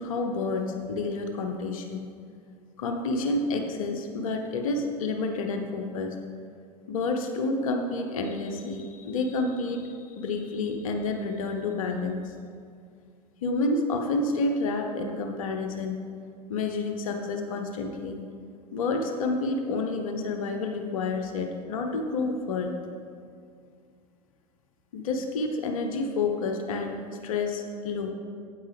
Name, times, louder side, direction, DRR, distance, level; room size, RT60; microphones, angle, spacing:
voice 1, 0.0-2.1 2.8-6.2 6.9-12.3 13.4-16.0 16.5-18.2 18.7-22.7 24.9-28.1, left 3 dB, 60° left, 4 dB, 0.8 m, -29 dB
8.9 x 8.4 x 3.5 m, 2.3 s
figure-of-eight pair, 80°, 20 cm